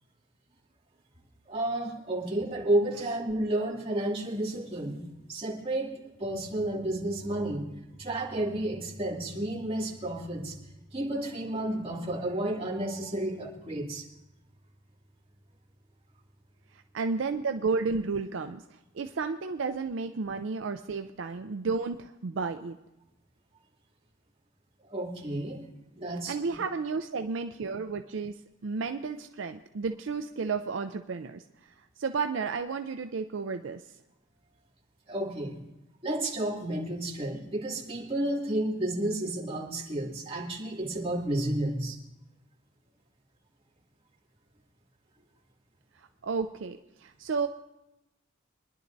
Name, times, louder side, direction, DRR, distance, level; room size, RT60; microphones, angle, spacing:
voice 1, 1.5-5.0 5.3-7.7 8.0-10.6 10.9-14.0 24.9-25.6 25.9-26.4 35.1-35.6 36.0-42.0, right 1 dB, 30° right, -4 dB, 2.3 m, -31 dB
voice 2, 16.9-18.6 18.9-22.8 26.3-28.4 28.6-31.4 32.0-33.8 46.2-47.5, right 4 dB, 70° right, 7 dB, 0.5 m, -32 dB
25.0 x 11.0 x 2.6 m, 0.93 s
head